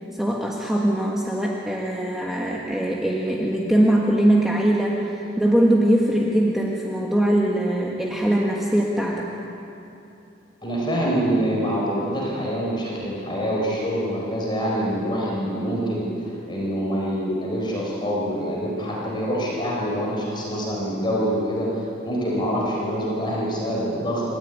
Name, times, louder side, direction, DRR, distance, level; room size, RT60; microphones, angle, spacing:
voice 1, 0.1-9.3, right 1 dB, ahead, -3 dB, 1.6 m, -21 dB
voice 2, 10.6-24.2, equal, 25° left, -4 dB, 4.6 m, -25 dB
28.5 x 14.5 x 9.4 m, 2.9 s
head